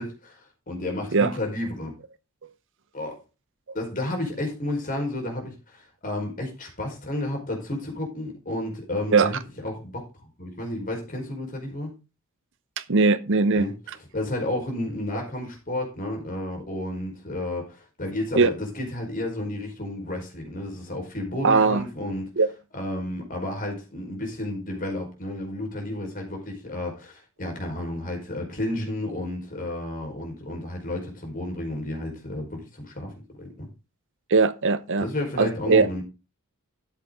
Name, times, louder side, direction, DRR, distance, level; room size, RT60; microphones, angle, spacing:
voice 1, 0.0-1.9 2.9-3.2 3.7-11.9 13.5-13.7 14.1-22.3 22.7-33.7 35.0-36.0, left 1 dB, 40° left, 4.8 m, -32 dB
voice 2, 12.9-13.7 18.4-18.5 21.4-21.8 22.4-22.5 34.3-35.1 35.4-35.9, right 4 dB, 60° right, 0.8 m, -19 dB
13.5 x 7.7 x 3.8 m
head